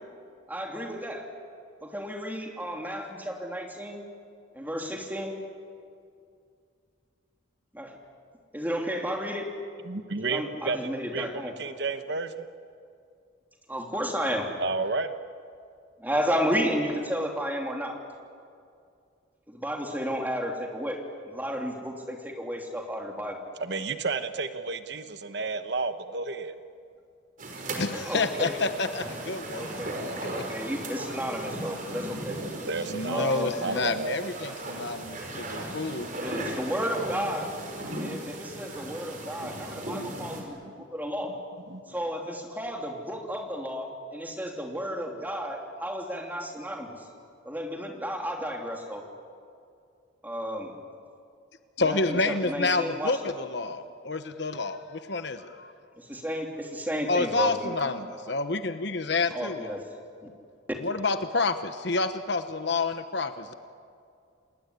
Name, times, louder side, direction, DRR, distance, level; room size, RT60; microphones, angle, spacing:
voice 1, 0.5-1.2 1.8-4.0 4.5-5.3 7.7-7.9 8.5-9.5 10.2-11.5 13.7-14.5 16.0-18.0 19.5-21.0 21.2-23.4 27.9-28.5 29.3-30.0 30.3-32.4 33.1-33.9 34.4-34.6 35.3-35.4 36.1-37.5 38.0-41.3 41.9-47.0 47.4-49.0 50.2-50.7 51.8-53.2 56.0-58.0 58.3-58.4 59.3-59.8, equal, 10° right, 2 dB, 3.1 m, -32 dB
voice 2, 9.9-10.8 11.1-12.3 14.6-15.1 23.6-26.5 32.6-33.2 33.6-34.2 39.4-39.9 40.3-40.7 41.7-41.8, right 3 dB, 60° right, 9 dB, 1.1 m, -32 dB
sound 1, 27.4-40.4, right 1 dB, 45° right, 4.8 m, -37 dB
voice 3, 27.8-29.7 30.2-30.3 32.8-36.1 51.8-55.7 57.1-59.7 60.8-63.5, left 3 dB, 60° left, 9 dB, 1.1 m, -29 dB
28.5 x 20.0 x 9.8 m, 2.4 s
head